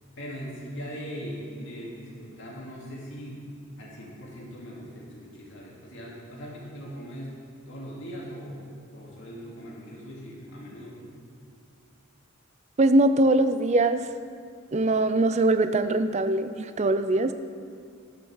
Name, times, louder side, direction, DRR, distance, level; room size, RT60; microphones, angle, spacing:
voice 1, 0.2-3.5 3.8-7.4 7.7-11.1, equal, 60° left, -4 dB, 2.6 m, -40 dB
voice 2, 12.8-14.1 14.7-17.3, right 2 dB, 35° right, 10 dB, 0.4 m, -22 dB
11.0 x 6.4 x 7.2 m, 2.3 s
head